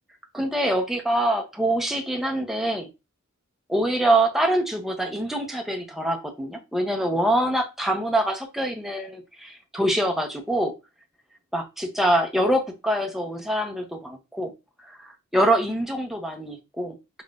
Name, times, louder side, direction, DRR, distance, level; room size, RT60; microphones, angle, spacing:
voice 1, 0.3-2.9 3.7-10.7 11.5-14.5 14.9-17.2, right 1 dB, ahead, 0.7 m, -25 dB
5.5 x 3.0 x 2.5 m
head